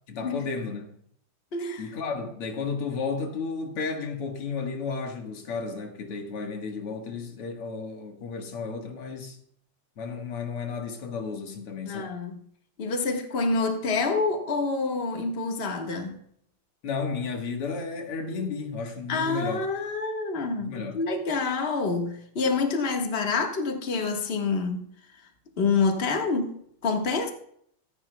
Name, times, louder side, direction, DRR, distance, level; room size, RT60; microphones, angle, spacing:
voice 1, 0.1-0.9 1.8-9.4 10.0-12.2 16.8-19.6 20.6-21.0, left 5 dB, 90° left, 2.6 m, -33 dB
voice 2, 1.5-1.9 11.8-12.3 12.8-16.2 19.1-24.8 25.6-26.5 26.8-27.3, left 4 dB, 30° left, 1.5 m, -27 dB
16.0 x 14.5 x 2.3 m
omnidirectional pair, 2.4 m